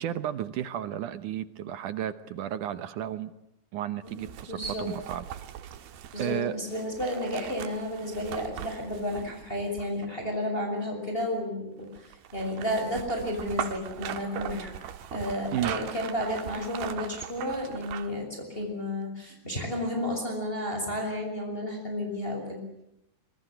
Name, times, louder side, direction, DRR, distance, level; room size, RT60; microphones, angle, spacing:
voice 1, 0.0-3.3 3.7-5.2 6.2-6.6 15.5-15.7, right 11 dB, 70° right, 13 dB, 2.3 m, -33 dB
voice 2, 4.0-4.9 6.1-14.7 15.1-22.6, left 1 dB, 15° left, 2 dB, 6.3 m, -32 dB
sound 1, 4.1-10.3 11.9-18.2 18.6-18.7, right 10 dB, 85° right, 3.3 m, -40 dB
26.0 x 23.0 x 7.9 m, 0.84 s
omnidirectional pair, 4.3 m